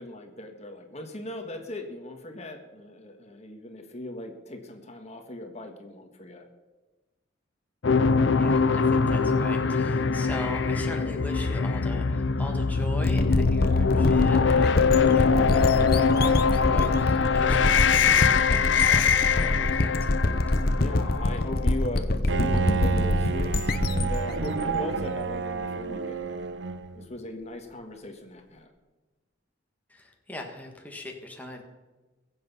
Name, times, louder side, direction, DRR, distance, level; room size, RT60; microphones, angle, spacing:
voice 1, 0.0-6.5 20.7-26.3 26.9-28.7, left 1 dB, 40° left, 4 dB, 1.6 m, -38 dB
sound 1, 7.8-21.9, left 5 dB, 80° left, 0.6 m, -23 dB
voice 2, 8.4-20.0 29.9-31.6, left 1 dB, 10° left, 1 dB, 1.6 m, -40 dB
sound 2, 13.0-25.7, left 1 dB, 55° left, 0.9 m, -26 dB
Bowed string instrument, 22.3-27.1, right 4 dB, 75° right, 0.8 m, -29 dB
22.0 x 7.9 x 5.5 m, 1.2 s
head